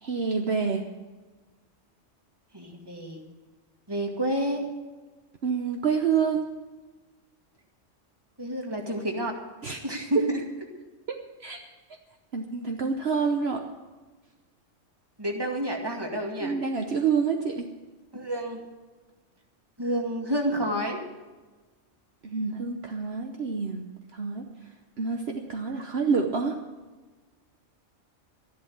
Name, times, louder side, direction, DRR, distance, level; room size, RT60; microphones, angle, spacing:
voice 1, 0.0-0.8 5.4-6.5 9.6-9.8 11.1-11.6 12.3-13.6 16.4-17.7 22.2-23.8 24.1-24.4 25.0-26.6, right 5 dB, 55° right, 3 dB, 1.2 m, -27 dB
voice 2, 2.5-3.2 3.9-4.7 8.4-9.3 9.8-10.4 15.2-16.6 18.1-18.6 19.8-21.0, equal, 20° right, 1 dB, 2.2 m, -29 dB
13.0 x 11.5 x 7.2 m, 1.3 s
omnidirectional pair, 1.3 m